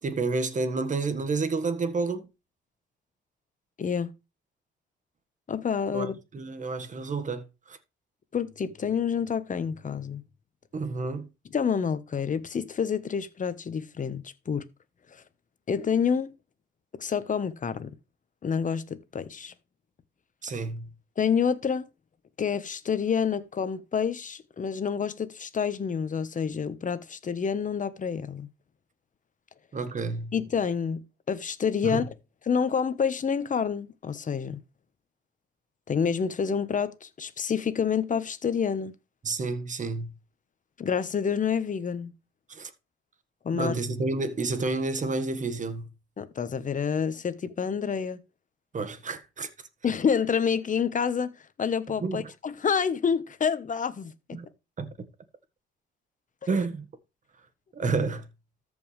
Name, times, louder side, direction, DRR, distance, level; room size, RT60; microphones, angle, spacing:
voice 1, 0.0-2.3 5.9-7.8 10.7-11.3 20.4-20.9 29.7-30.3 31.8-32.0 39.2-40.1 42.5-42.7 43.5-45.9 48.7-49.5 52.0-52.3 54.3-54.5 54.8-54.9 56.5-56.9 57.7-58.3, right 3 dB, 40° right, 1.7 m, -30 dB
voice 2, 3.8-4.1 5.5-6.2 8.3-10.2 11.5-14.7 15.1-15.2 15.7-16.4 16.9-18.0 18.4-19.5 21.2-21.9 22.4-28.5 30.3-32.1 32.5-34.6 35.9-38.9 40.8-42.1 43.4-43.7 46.2-48.2 49.8-54.4, left 6 dB, 40° left, 1.2 m, -28 dB
14.0 x 5.4 x 3.3 m
cardioid pair, 90°, 20 cm